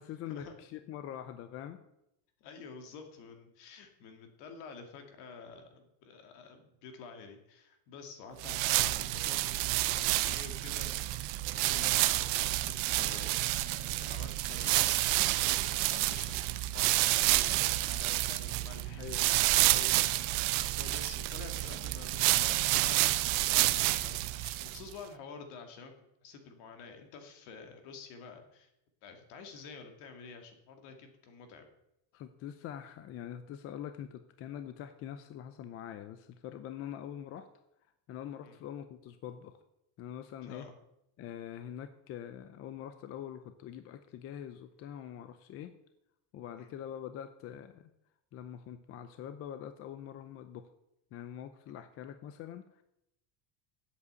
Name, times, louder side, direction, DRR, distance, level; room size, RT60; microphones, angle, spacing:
voice 1, 0.0-1.8 11.7-11.9 18.9-19.3 19.7-20.0 32.1-37.5 38.1-39.6 40.0-40.7 41.2-45.7 46.3-47.9 48.3-50.7 51.1-52.8, left 10 dB, 30° left, 10 dB, 0.5 m, -44 dB
voice 2, 2.4-10.9 11.2-19.6 20.0-20.3 20.8-25.9 26.2-28.7 29.0-31.7 38.4-38.6 40.4-40.7 46.5-46.7 51.8-51.9, left 5 dB, 60° left, 5 dB, 2.3 m, -49 dB
sound 1, 8.4-24.9, right 17 dB, 45° right, 0.5 m, -29 dB
8.3 x 8.0 x 8.0 m, 0.84 s
cardioid pair, 165°, 45 cm